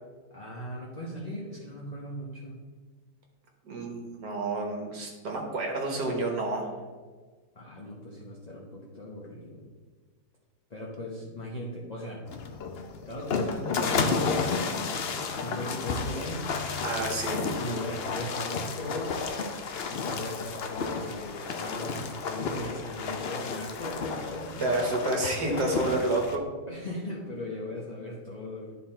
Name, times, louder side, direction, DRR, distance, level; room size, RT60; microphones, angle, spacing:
voice 1, 0.3-2.6 7.5-9.7 10.7-12.2 13.1-15.0 15.4-16.4 17.6-19.1 19.9-24.7 25.5-26.0 26.7-28.8, left 1 dB, 30° left, -3 dB, 0.9 m, -38 dB
voice 2, 3.7-6.7 15.8-15.9 16.8-17.5 24.6-26.4, right 2 dB, 70° right, 1 dB, 1.8 m, -29 dB
sound 1, 12.3-26.4, left 4 dB, 65° left, 0.6 m, -32 dB
11.0 x 4.2 x 4.3 m, 1.4 s
omnidirectional pair, 1.9 m